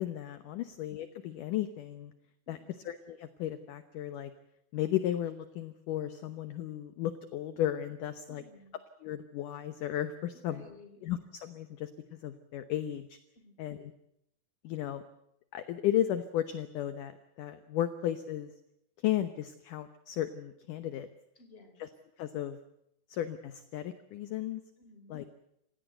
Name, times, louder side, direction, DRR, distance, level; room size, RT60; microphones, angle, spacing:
voice 1, 0.0-2.1 2.5-2.6 2.9-4.3 4.7-8.4 9.0-10.6 11.0-13.2 13.6-13.9 14.6-15.0 15.5-17.1 17.4-18.5 19.0-21.1 21.8-21.9 22.2-22.6 23.1-24.6 25.1-25.2, left 12 dB, 70° left, 11 dB, 2.2 m, -34 dB
voice 2, 2.5-2.8 8.3-8.7 10.5-11.0 13.4-13.7 21.4-21.9 24.8-25.2, left 3 dB, 15° left, 7 dB, 3.7 m, -56 dB
28.0 x 17.0 x 8.0 m, 0.78 s
omnidirectional pair, 4.7 m